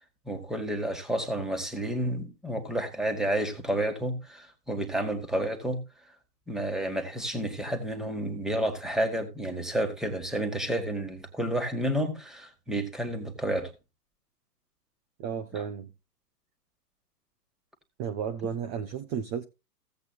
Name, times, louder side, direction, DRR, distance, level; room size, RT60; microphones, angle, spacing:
voice 1, 0.2-5.8 6.5-13.7 15.5-15.6, right 1 dB, ahead, 1.6 m, -30 dB
voice 2, 15.2-15.9 18.0-19.4, right 7 dB, 25° right, 0.8 m, -33 dB
16.0 x 8.1 x 2.3 m
hypercardioid pair, 130°, 49 cm